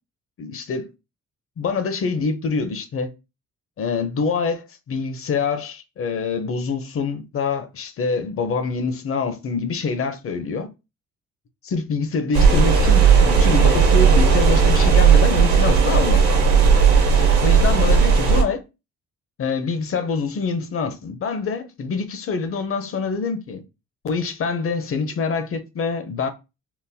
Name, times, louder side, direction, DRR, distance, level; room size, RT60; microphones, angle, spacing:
voice 1, 0.4-0.9 1.6-3.1 3.8-10.7 11.6-16.2 17.4-18.6 19.4-23.6 24.0-26.3, left 5 dB, 45° left, 0.6 m, -25 dB
sound 1, 12.3-18.4, right 6 dB, 70° right, 1.1 m, -15 dB
3.8 x 2.1 x 2.7 m
cardioid pair, 90°, 30 cm